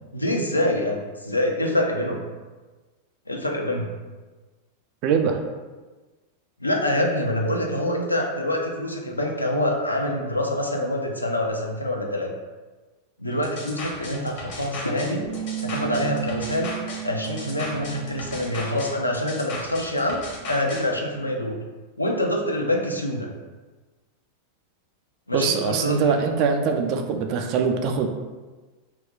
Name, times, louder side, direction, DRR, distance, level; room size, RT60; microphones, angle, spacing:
voice 1, 0.1-2.2 3.3-3.9 6.6-12.3 13.2-15.3 15.6-16.7 17.0-21.6 22.0-23.3 25.3-26.2, left 1 dB, 85° left, 1 dB, 0.4 m, -25 dB
voice 2, 5.0-5.4 25.3-28.1, right 5 dB, 40° right, 5 dB, 0.3 m, -22 dB
sound 1, 13.4-20.8, left 2 dB, 45° left, 0.7 m, -36 dB
Bass guitar, 15.2-19.5 19.8-21.5, right 14 dB, 90° right, 0.6 m, -36 dB
2.3 x 2.2 x 3.6 m, 1.3 s
figure-of-eight pair, 90°, 0 cm